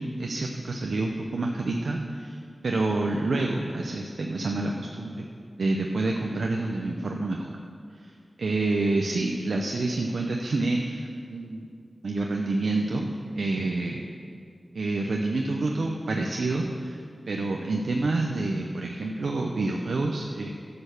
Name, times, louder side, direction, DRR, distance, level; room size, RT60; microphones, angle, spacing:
voice 1, 0.0-2.4 2.6-5.3 5.6-7.6 8.0-8.1 8.4-11.7 12.0-13.1 13.4-14.0 14.7-17.0 17.3-20.5, right 2 dB, 80° right, 1 dB, 0.7 m, -28 dB
9.9 x 6.9 x 6.7 m, 2.3 s
wide cardioid pair, 80°, 0 cm